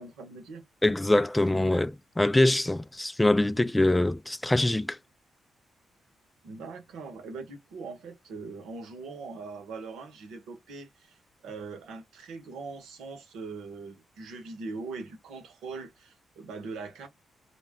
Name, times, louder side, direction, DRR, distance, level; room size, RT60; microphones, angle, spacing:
voice 1, 0.0-0.6 6.4-11.2 11.4-17.1, right 4 dB, 90° right, 0.9 m, -41 dB
voice 2, 0.8-5.0, left 1 dB, 15° left, 0.3 m, -24 dB
2.2 x 2.2 x 3.5 m
cardioid pair, 70°, 0 cm